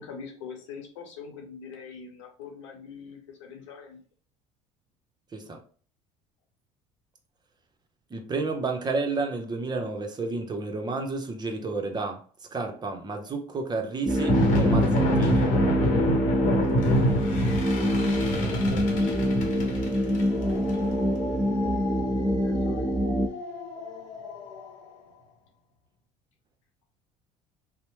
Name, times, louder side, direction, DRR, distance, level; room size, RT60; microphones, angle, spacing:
voice 1, 0.0-4.0 18.3-19.3 22.1-23.3, left 5 dB, 90° left, 0.8 m, -43 dB
voice 2, 8.1-12.2 12.5-15.5, right 3 dB, 30° right, 0.7 m, -31 dB
sound 1, 14.1-24.7, left 1 dB, 55° left, 0.9 m, -28 dB
sound 2, 14.1-23.3, equal, 5° right, 0.4 m, -25 dB
2.9 x 2.1 x 3.0 m
supercardioid pair, 85°, 15 cm